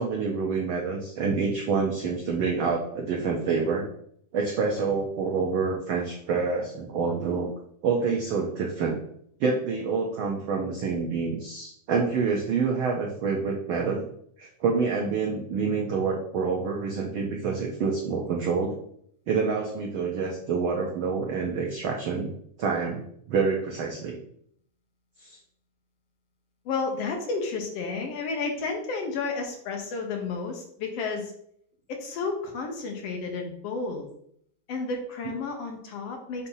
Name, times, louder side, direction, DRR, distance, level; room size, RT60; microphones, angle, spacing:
voice 1, 0.0-3.9 4.3-7.5 7.8-9.0 9.4-14.0 14.4-18.7 19.3-22.3 22.6-24.2 25.2-25.4, right 5 dB, 90° right, 0 dB, 1.1 m, -27 dB
voice 2, 26.7-31.3 31.9-34.1 34.7-36.5, left 4 dB, 65° left, 3 dB, 1.8 m, -31 dB
6.7 x 2.7 x 5.5 m, 0.67 s
omnidirectional pair, 3.3 m